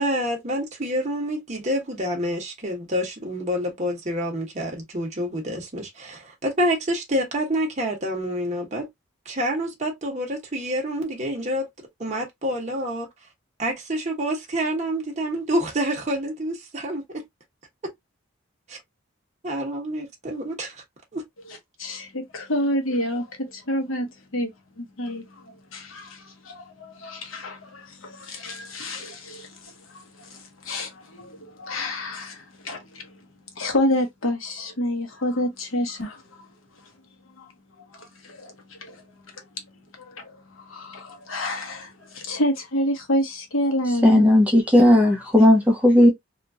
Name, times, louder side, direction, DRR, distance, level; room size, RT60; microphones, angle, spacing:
voice 1, 0.0-8.9 9.3-11.7 12.0-13.1 13.6-17.0 18.7-18.8 19.4-20.8 21.1-21.2, equal, 35° right, 1.0 m, -27 dB
voice 2, 21.5-24.5 24.8-33.2 33.6-36.5 37.4-37.5 37.9-39.0 39.3-39.4 40.0-44.3, left 1 dB, 90° left, 1.0 m, -29 dB
voice 3, 44.0-46.1, left 1 dB, 5° right, 0.8 m, -15 dB
2.9 x 2.4 x 2.6 m
head